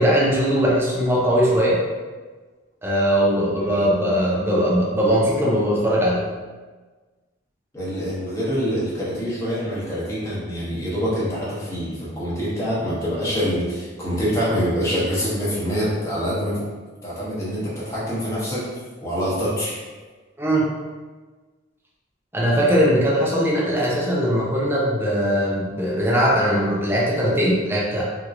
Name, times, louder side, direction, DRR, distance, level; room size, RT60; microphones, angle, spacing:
voice 1, 0.0-1.8 2.8-6.2 20.4-20.7 22.3-28.0, equal, 10° right, -5 dB, 0.7 m, -20 dB
voice 2, 3.3-3.9 7.7-16.6 17.0-18.7 19.0-19.8, equal, 15° left, -9 dB, 1.0 m, -25 dB
3.5 x 2.9 x 2.5 m, 1.4 s
head